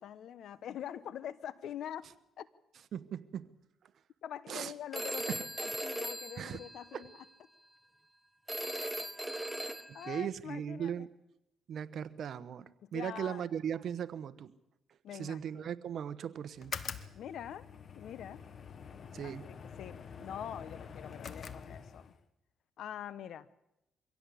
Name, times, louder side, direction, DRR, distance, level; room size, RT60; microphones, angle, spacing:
voice 1, 0.0-2.1 2.4-2.5 4.2-7.1 9.9-11.1 12.8-13.4 15.0-15.7 17.1-17.6 18.0-18.4 19.2-22.1 22.8-23.5, left 10 dB, 70° left, 1.1 m, -44 dB
voice 2, 2.9-3.5 4.5-4.7 5.2-5.4 6.4-6.6 6.9-7.1 9.9-11.1 11.7-14.5 15.1-17.1 19.1-19.5, right 9 dB, 60° right, 1.2 m, -38 dB
Telephone, 4.9-7.3 8.5-10.2, right 1 dB, 10° right, 1.2 m, -39 dB
sound 1, 16.6-22.2, left 6 dB, 50° left, 1.3 m, -45 dB
24.0 x 16.5 x 8.4 m
cardioid pair, 90°, 0 cm